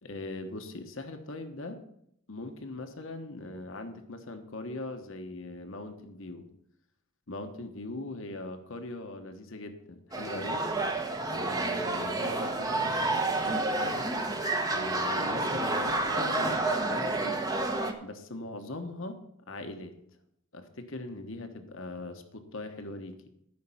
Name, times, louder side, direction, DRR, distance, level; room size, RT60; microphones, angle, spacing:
voice 1, 0.0-1.8 2.3-6.4 7.3-10.6 11.3-14.1 14.7-17.4 18.0-19.2 19.5-20.0 20.5-23.3, left 2 dB, 60° left, 6 dB, 1.2 m, -41 dB
sound 1, 10.1-17.9, right 2 dB, 15° right, 1.0 m, -29 dB
14.0 x 5.8 x 5.7 m, 0.73 s
head